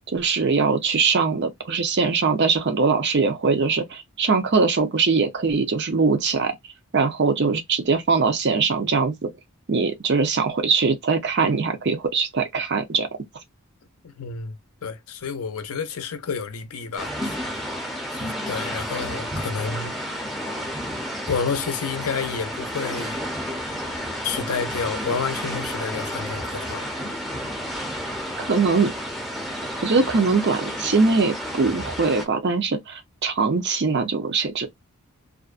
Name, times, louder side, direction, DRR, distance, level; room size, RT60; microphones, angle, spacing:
voice 1, 0.1-6.6 6.9-9.3 9.7-13.1 28.4-28.9 29.8-34.7, right 4 dB, 50° right, 0.6 m, -22 dB
voice 2, 14.0-17.7 18.1-20.0 21.3-23.2 24.2-26.9, left 5 dB, 75° left, 0.5 m, -30 dB
sound 1, 17.0-32.2, equal, ahead, 0.6 m, -31 dB
2.5 x 2.1 x 2.4 m
head